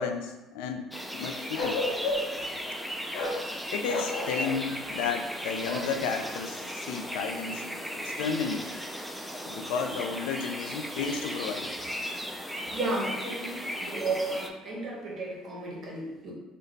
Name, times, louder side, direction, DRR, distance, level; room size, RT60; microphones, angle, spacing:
voice 1, 0.0-1.8 3.7-7.7 7.9-8.7 9.5-11.7, left 5 dB, 90° left, 6 dB, 0.3 m, -33 dB
sound 1, 0.9-14.5, equal, ahead, 0.3 m, -36 dB
Bark, 1.5-2.4 3.1-3.4 3.9-4.6 5.6-5.9, left 2 dB, 65° left, 0.7 m, -31 dB
voice 2, 12.7-16.3, right 2 dB, 40° right, -3 dB, 1.0 m, -33 dB
2.8 x 2.2 x 3.9 m, 1.0 s
cardioid pair, 110°, 0 cm